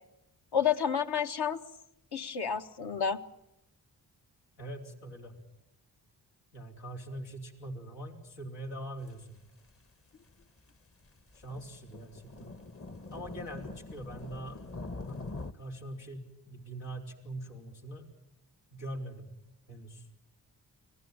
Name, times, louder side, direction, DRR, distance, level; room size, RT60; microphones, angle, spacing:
voice 1, 0.5-1.6 2.1-3.2, left 7 dB, 65° left, 6 dB, 1.7 m, -30 dB
voice 2, 4.6-5.3 6.5-9.4 11.3-12.5 13.1-14.6 15.1-18.0 18.7-19.3 19.7-20.0, right 1 dB, 90° left, 1 dB, 4.0 m, -43 dB
sound 1, 9.1-9.2 9.7-9.8 10.3-10.4 11.1-15.5, left 2 dB, 30° left, 1.2 m, -43 dB
25.0 x 18.0 x 9.0 m, 0.88 s
supercardioid pair, 55°, 42 cm